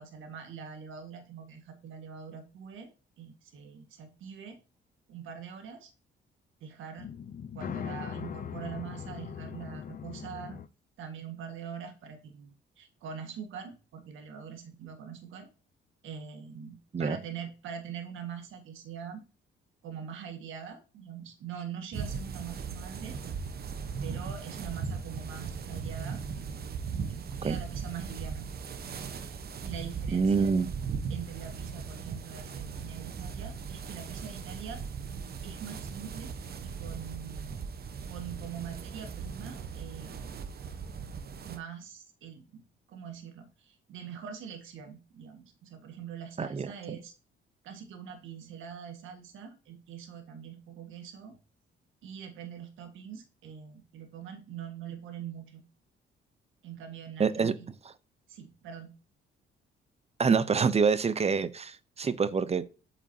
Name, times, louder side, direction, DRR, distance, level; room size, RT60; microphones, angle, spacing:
voice 1, 0.0-2.9 3.2-4.6 5.1-5.9 6.6-7.1 7.5-10.6 11.0-15.5 16.0-19.2 19.8-23.2 24.0-28.5 29.6-30.6 31.1-34.8 35.4-36.3 36.6-37.6 38.1-40.3 41.4-42.6 42.9-47.1 47.6-51.3 52.0-55.6 56.6-57.7 58.3-58.9, right 7 dB, 85° right, 1.7 m, -43 dB
sound 1, 7.0-10.7, left 8 dB, 45° left, 0.6 m, -40 dB
sound 2, 21.9-41.6, right 6 dB, 50° right, 1.0 m, -38 dB
voice 2, 30.1-30.7 46.4-46.7 57.2-57.5 60.2-62.6, right 5 dB, 30° right, 0.7 m, -26 dB
8.3 x 6.0 x 2.8 m
cardioid pair, 90°, 20 cm